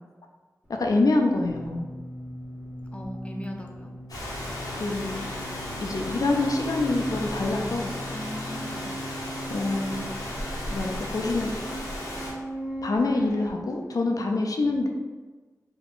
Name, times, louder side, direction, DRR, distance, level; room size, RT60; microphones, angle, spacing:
voice 1, 0.7-1.9 4.7-5.3 5.8-7.9 9.5-10.1 10.7-11.5 12.8-14.9, left 2 dB, 70° left, 2 dB, 0.5 m, -26 dB
sound 1, 0.7-13.5, equal, 25° right, 1.2 m, -39 dB
voice 2, 2.9-3.9 8.1-8.9, equal, 20° left, 1 dB, 0.6 m, -38 dB
Rain, 4.1-12.3, left 1 dB, 85° left, 1.0 m, -35 dB
3.7 x 2.3 x 3.9 m, 1.3 s
cardioid pair, 40°, 6 cm